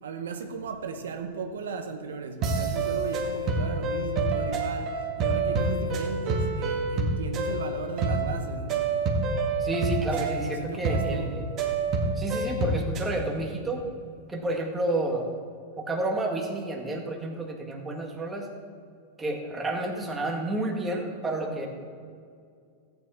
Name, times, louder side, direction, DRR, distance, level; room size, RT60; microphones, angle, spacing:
voice 1, 0.0-9.0 10.0-11.3 11.7-11.9, right 5 dB, 90° right, 1.0 m, -36 dB
sound 1, 2.4-13.1, right 3 dB, 35° right, 1.8 m, -28 dB
voice 2, 9.6-11.5 12.2-13.8 14.3-15.3 15.8-18.5 19.2-21.7, right 2 dB, 10° right, 1.9 m, -30 dB
13.5 x 9.3 x 4.4 m
hypercardioid pair, 130°, 0 cm